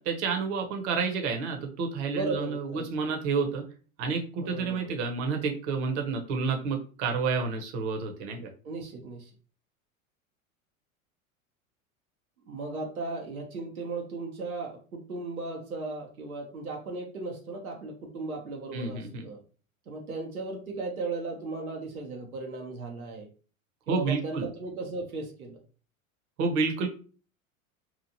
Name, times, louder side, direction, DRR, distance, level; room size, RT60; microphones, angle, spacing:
voice 1, 0.0-3.6 4.0-8.5 18.7-19.3 23.9-24.5 26.4-26.9, right 4 dB, 55° right, 3 dB, 0.9 m, -29 dB
voice 2, 2.1-3.1 4.4-4.9 8.6-9.3 12.5-19.4 19.9-23.3 23.9-25.6, right 3 dB, 90° right, 0 dB, 0.7 m, -36 dB
2.9 x 2.4 x 2.6 m, 0.38 s
figure-of-eight pair, 85°, 42 cm